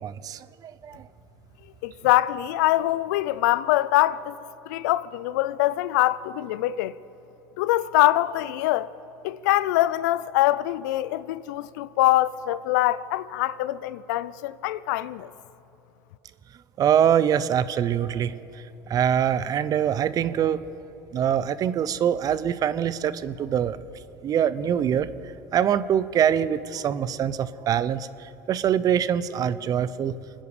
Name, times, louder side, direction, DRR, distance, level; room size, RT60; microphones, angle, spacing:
voice 1, 0.0-1.0 16.8-18.3 18.9-20.6 21.1-23.8 24.2-25.1 25.5-30.1, right 9 dB, 40° right, 0.6 m, -24 dB
voice 2, 1.8-4.4 4.7-6.9 7.6-8.9 9.2-15.3, left 15 dB, 75° left, 0.5 m, -23 dB
28.0 x 10.0 x 5.0 m
supercardioid pair, 95°, 10 cm